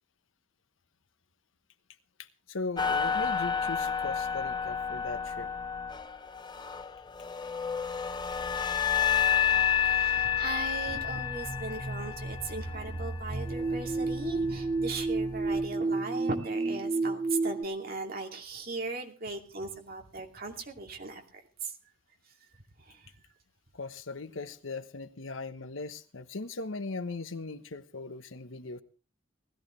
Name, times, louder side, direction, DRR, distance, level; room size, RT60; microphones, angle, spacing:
voice 1, 2.2-5.5 23.7-28.8, left 3 dB, 90° left, 11 dB, 1.2 m, -39 dB
sound 1, 2.8-15.7, left 8 dB, 20° left, 0.6 m, -31 dB
voice 2, 9.6-21.2 21.6-21.7 22.9-23.1, right 3 dB, 50° right, 3 dB, 2.5 m, -38 dB
sound 2, 10.9-17.6, right 3 dB, 25° right, 0.6 m, -32 dB
19.0 x 14.0 x 3.2 m, 0.36 s
head